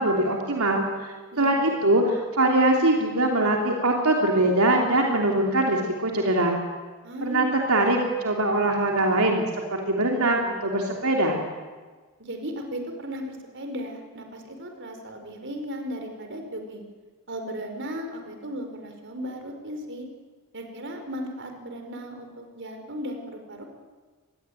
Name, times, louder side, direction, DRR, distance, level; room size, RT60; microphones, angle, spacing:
voice 1, 0.0-6.6 7.2-11.4, right 1 dB, 80° right, 1 dB, 3.4 m, -22 dB
voice 2, 1.3-1.8 7.0-7.5 12.2-16.8 17.3-20.1 20.5-23.6, equal, 55° right, 5 dB, 4.7 m, -36 dB
26.5 x 20.5 x 9.4 m, 1.4 s
head